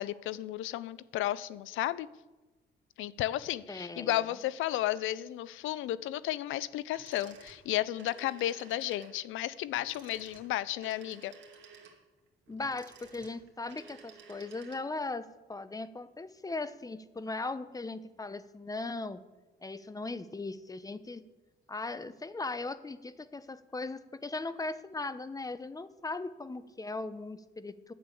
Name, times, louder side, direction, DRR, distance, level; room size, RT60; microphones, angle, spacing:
voice 1, 0.0-2.1 3.0-11.3, left 14 dB, 85° left, 18 dB, 0.5 m, -33 dB
voice 2, 3.7-4.2 12.5-19.2 19.6-21.2 21.7-27.9, left 3 dB, 20° left, 13 dB, 0.8 m, -38 dB
sound 1, 6.9-15.1, right 5 dB, 65° right, 2.1 m, -54 dB
10.5 x 6.9 x 8.3 m, 1.2 s
cardioid pair, 90°, 20 cm